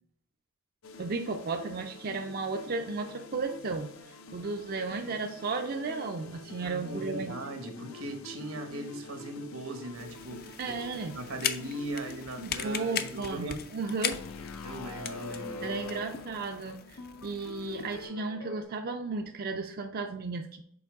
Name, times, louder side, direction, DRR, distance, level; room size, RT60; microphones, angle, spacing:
sound 1, 0.8-18.6, left 3 dB, 90° left, 0.7 m, -45 dB
voice 1, 1.0-7.3 10.6-11.1 12.4-14.2 15.6-20.6, right 4 dB, 45° right, 4 dB, 0.4 m, -34 dB
voice 2, 6.6-13.6 14.0-14.1 14.6-16.0, right 1 dB, 80° right, 5 dB, 1.1 m, -39 dB
sound 2, 9.9-18.1, left 9 dB, 50° left, 0.5 m, -39 dB
7.0 x 4.5 x 3.5 m, 0.69 s
head